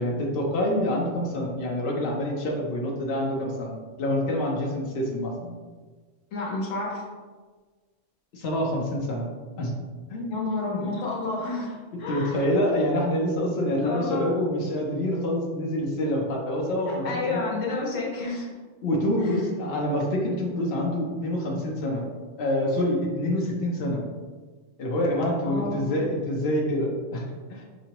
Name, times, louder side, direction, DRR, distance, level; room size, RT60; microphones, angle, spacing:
voice 1, 0.0-5.5 8.3-9.3 9.6-9.7 10.1-10.8 11.9-17.4 18.8-22.0 22.4-24.0 24.8-27.6, left 1 dB, 60° left, -1 dB, 0.8 m, -27 dB
voice 2, 6.3-7.0 10.3-12.5 13.7-14.3 16.9-18.5 19.2-19.5 25.5-25.9, left 3 dB, 80° left, -3 dB, 1.2 m, -30 dB
5.2 x 2.0 x 2.8 m, 1.4 s
omnidirectional pair, 1.3 m